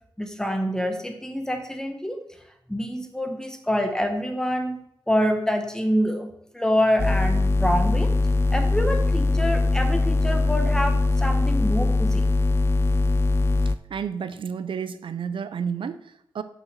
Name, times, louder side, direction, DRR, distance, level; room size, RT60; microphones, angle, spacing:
voice 1, 0.2-2.2 2.7-4.8 5.1-8.1 8.5-12.3, equal, 5° left, 1.3 m, -26 dB
sound 1, 7.0-13.8, left 2 dB, 30° left, 0.4 m, -21 dB
voice 2, 13.9-16.4, right 7 dB, 80° right, 0.5 m, -31 dB
6.5 x 5.9 x 6.7 m
wide cardioid pair, 110°, 9 cm